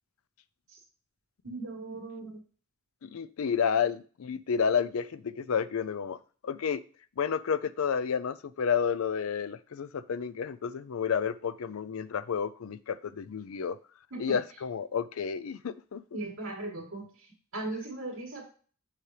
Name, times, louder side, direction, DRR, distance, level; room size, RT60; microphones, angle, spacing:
voice 1, 1.4-2.4 14.1-14.3 16.1-17.1 17.5-18.5, right 2 dB, 75° right, -8 dB, 2.1 m, -38 dB
voice 2, 3.0-6.2 6.4-6.8 7.2-13.8 14.2-16.0, left 6 dB, 75° left, 15 dB, 0.4 m, -30 dB
7.5 x 4.9 x 3.3 m, 0.40 s
head